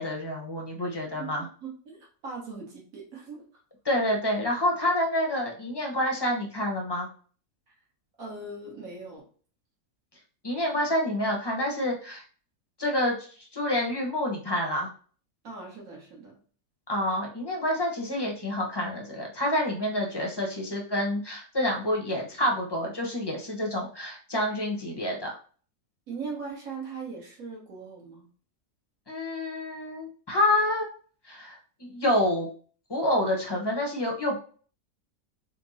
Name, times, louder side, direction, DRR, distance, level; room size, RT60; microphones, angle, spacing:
voice 1, 0.0-1.5 3.8-7.1 10.4-12.2 12.8-14.9 16.9-25.3 29.1-30.9 31.2-32.5 32.9-34.4, left 1 dB, 20° left, -1 dB, 0.8 m, -28 dB
voice 2, 1.2-3.4 8.2-9.3 15.4-16.4 26.1-28.3, right 4 dB, 60° right, -2 dB, 1.8 m, -40 dB
4.3 x 2.2 x 4.1 m, 0.42 s
omnidirectional pair, 1.6 m